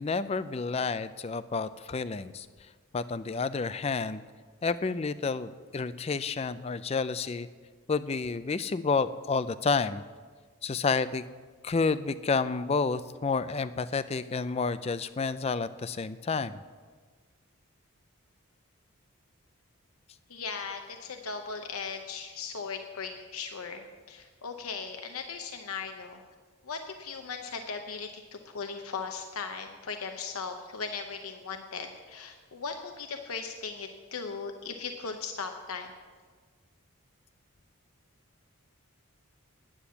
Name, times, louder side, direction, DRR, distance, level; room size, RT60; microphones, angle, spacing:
voice 1, 0.0-2.5 2.9-4.2 4.6-7.5 7.9-10.0 10.6-11.3 11.6-16.6, left 4 dB, 30° left, 14 dB, 0.4 m, -30 dB
voice 2, 20.3-26.2 26.6-35.9, left 5 dB, 90° left, 5 dB, 0.8 m, -38 dB
10.0 x 9.9 x 7.0 m, 1.5 s
head